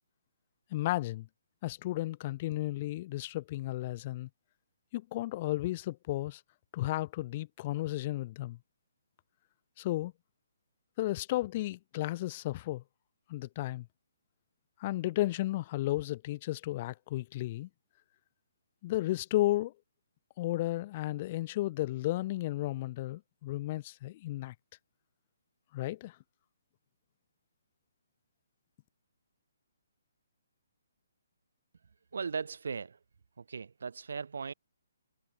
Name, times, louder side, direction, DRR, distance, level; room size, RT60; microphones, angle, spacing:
voice 1, 0.7-1.3 1.6-4.3 4.9-6.4 6.7-8.6 9.8-10.1 11.0-12.8 13.3-13.9 14.8-17.7 18.8-19.7 20.4-24.5 25.7-26.2, left 16 dB, 35° left, 0.5 m, -33 dB
voice 2, 32.1-33.0 33.4-34.5, right 5 dB, 60° right, 0.6 m, -38 dB
figure-of-eight pair, 135°, 0 cm